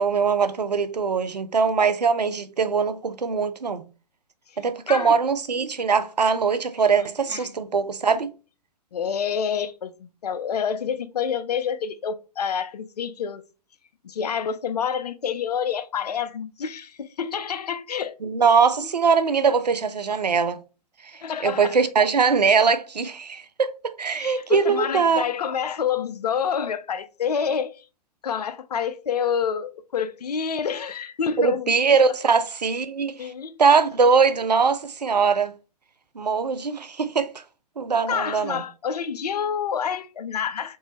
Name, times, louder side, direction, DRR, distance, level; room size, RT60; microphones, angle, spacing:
voice 1, 0.0-3.8 4.6-8.3 18.2-20.6 21.1-25.2 31.4-33.3 33.6-35.5 36.2-37.4 37.8-38.6, right 5 dB, 90° right, 0.5 m, -21 dB
voice 2, 8.9-13.4 14.0-18.1 21.2-21.7 24.1-27.8 28.2-31.7 33.2-33.6 38.1-40.8, left 7 dB, 75° left, 0.5 m, -28 dB
3.6 x 3.0 x 2.9 m
figure-of-eight pair, 115°, 21 cm